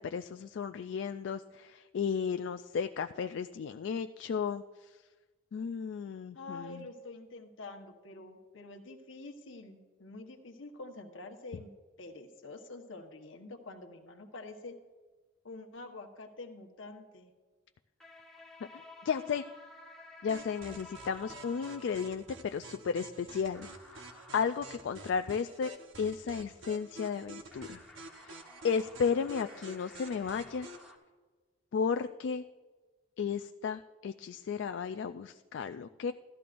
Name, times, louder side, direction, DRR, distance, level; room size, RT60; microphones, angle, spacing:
voice 1, 0.0-4.6 5.5-6.8 18.7-19.4 20.2-23.7 24.3-25.7 26.0-27.8 28.2-28.4 28.6-30.7 31.7-32.4 33.2-36.1, left 6 dB, 65° left, 9 dB, 0.3 m, -34 dB
voice 2, 6.3-11.7 12.0-14.8 15.4-17.3, left 2 dB, 85° left, 4 dB, 1.2 m, -47 dB
sound 1, 18.0-22.5 23.5-24.8 27.5-31.0, left 2 dB, ahead, 1.1 m, -53 dB
sound 2, 20.3-30.9, right 2 dB, 75° right, 1.0 m, -50 dB
14.0 x 12.5 x 2.5 m, 1.3 s
head